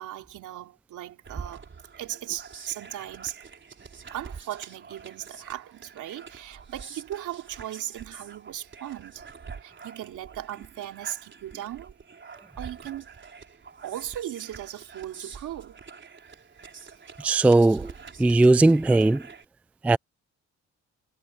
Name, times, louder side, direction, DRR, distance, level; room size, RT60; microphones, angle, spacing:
voice 1, 0.0-1.6 2.0-3.4 4.1-9.3 9.6-11.9 12.6-13.2 13.8-15.8, right 12 dB, 80° right, 3.2 m, -37 dB
sound 1, 1.2-19.4, right 5 dB, 40° right, 4.2 m, -45 dB
voice 2, 17.2-17.9 18.2-19.2 19.8-20.0, right 2 dB, 5° right, 0.3 m, -18 dB
cardioid pair, 90°, 30 cm